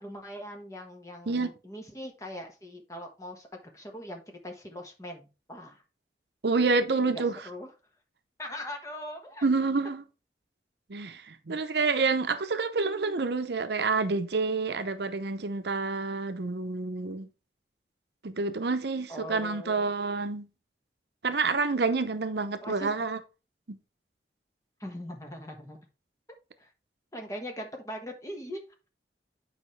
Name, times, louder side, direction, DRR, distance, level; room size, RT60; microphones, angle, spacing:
voice 1, 0.0-3.5 3.7-5.8 7.0-7.7 8.4-9.5 19.1-19.9 22.6-22.9 24.8-25.8 26.6-26.7 27.1-28.6, equal, 20° left, 1.3 m, -41 dB
voice 2, 6.4-7.4 9.4-10.0 10.9-17.3 18.2-20.5 21.2-23.2 23.7-23.8, right 4 dB, 70° right, 0.7 m, -28 dB
8.5 x 5.0 x 3.2 m
head